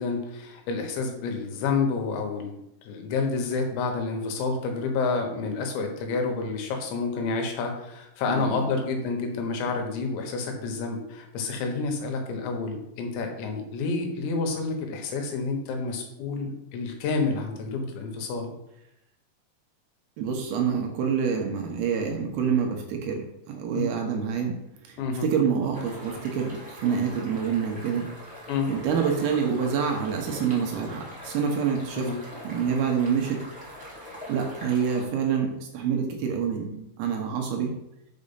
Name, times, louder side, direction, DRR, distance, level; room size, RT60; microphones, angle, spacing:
voice 1, 0.0-2.6 2.9-18.5 23.7-23.8 25.0-25.3 28.5-28.7 32.0-32.2, left 4 dB, 85° left, 3 dB, 3.5 m, -29 dB
voice 2, 8.3-8.7 20.2-24.6 24.8-28.1 28.7-32.1 32.4-33.4 34.3-37.7, right 6 dB, 75° right, 2 dB, 2.6 m, -27 dB
sound 1, 25.7-35.0, equal, 5° right, 0.7 m, -42 dB
6.3 x 5.4 x 5.5 m, 0.84 s
omnidirectional pair, 5.0 m